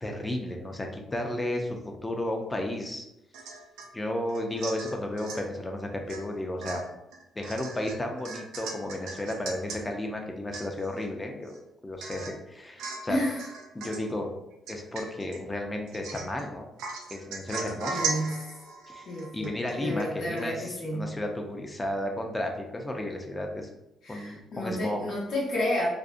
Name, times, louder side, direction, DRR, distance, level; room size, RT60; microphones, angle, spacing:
voice 1, 0.0-3.0 3.9-6.8 7.4-11.6 11.8-13.2 13.7-14.3 14.7-16.7 17.1-18.2 18.9-19.0 19.3-23.7 24.1-25.0, left 1 dB, 15° left, 2 dB, 0.4 m, -33 dB
Domestic sounds home sounds / Chink clink / Drip, 3.3-3.9 4.3-5.5 6.1-6.3 6.6-9.8 10.2-10.3 10.5-11.0 11.5-11.6 12.0-12.4 12.8-13.1 13.4-14.1 14.7-15.4 15.9-16.4 16.8-20.1 20.4-20.5, right 4 dB, 90° right, 0.4 m, -38 dB
voice 2, 13.1-13.4 17.9-18.4 19.0-21.1 24.0-25.9, left 1 dB, 70° left, -6 dB, 1.0 m, -31 dB
2.4 x 2.0 x 2.5 m, 0.88 s
cardioid pair, 90°, 0 cm